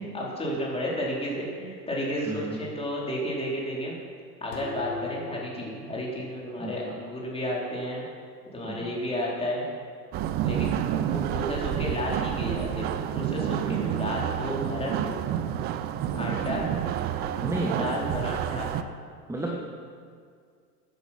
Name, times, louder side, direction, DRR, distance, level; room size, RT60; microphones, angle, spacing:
voice 1, 0.0-4.0 4.4-8.0 8.5-9.7 10.4-10.7 11.1-12.9 13.1-15.2 16.1-16.7 17.8-18.7, equal, 10° left, -4 dB, 4.0 m, -32 dB
voice 2, 2.3-2.6 6.6-6.8 8.6-8.9 13.7-13.8 17.4-17.8 19.3-19.6, right 2 dB, 5° right, -1 dB, 1.4 m, -32 dB
sound 1, 4.5-7.3, left 4 dB, 85° left, 2.1 m, -42 dB
sound 2, 10.1-18.8, right 10 dB, 20° right, 0.4 m, -29 dB
14.5 x 9.6 x 5.9 m, 2.1 s
hypercardioid pair, 95°, 48 cm